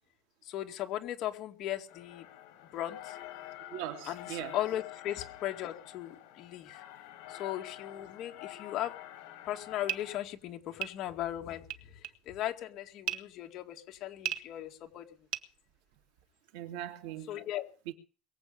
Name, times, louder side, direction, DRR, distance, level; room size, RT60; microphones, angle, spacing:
voice 1, 0.4-2.3 2.7-3.2 4.1-6.8 7.3-8.9 9.5-11.6 12.3-15.1 17.3-17.7, left 13 dB, 40° left, 2.2 m, -37 dB
sound 1, 1.9-10.2, left 14 dB, 55° left, 5.9 m, -48 dB
voice 2, 3.7-4.6 16.5-17.4 17.9-18.0, right 12 dB, 85° right, 2.8 m, -40 dB
sound 2, 9.5-16.3, right 11 dB, 55° right, 1.7 m, -40 dB
22.5 x 8.3 x 7.2 m
cardioid pair, 180°, 0 cm